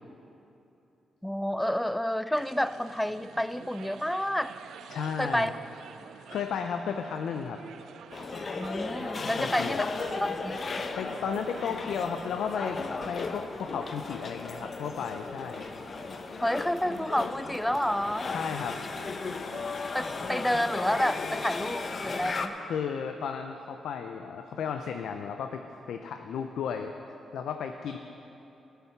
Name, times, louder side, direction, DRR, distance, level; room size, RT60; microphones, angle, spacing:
voice 1, 1.2-4.5 5.2-5.5 8.6-9.8 10.2-10.6 16.4-18.3 19.9-22.6, left 1 dB, 5° left, 14 dB, 0.3 m, -29 dB
sound 1, 2.3-20.6, right 8 dB, 85° right, 0.4 m, -50 dB
voice 2, 4.9-5.5 6.1-7.6 9.2-9.9 10.9-15.7 18.3-18.8 22.7-25.6 25.9-26.9 27.3-28.0, left 7 dB, 80° left, 6 dB, 0.5 m, -34 dB
sound 2, 8.1-22.5, left 4 dB, 45° left, 0.7 m, -35 dB
15.0 x 6.9 x 5.8 m, 2.9 s
cardioid pair, 80°, 0 cm